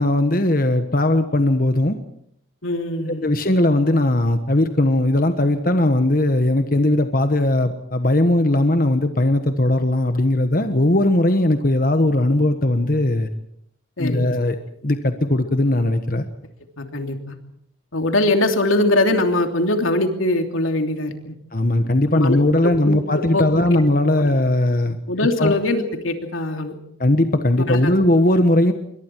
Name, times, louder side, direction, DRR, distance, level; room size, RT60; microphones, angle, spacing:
voice 1, 0.0-2.0 3.1-13.3 14.0-14.6 14.8-16.3 21.5-25.0 25.4-25.5 27.0-28.7, left 1 dB, 45° left, 7 dB, 1.3 m, -18 dB
voice 2, 2.6-3.3 14.0-14.3 16.8-17.4 17.9-21.3 22.2-22.4 23.1-23.4 25.1-26.7 27.7-27.8, left 2 dB, 85° left, 5 dB, 3.0 m, -21 dB
27.5 x 23.5 x 4.7 m, 0.70 s
head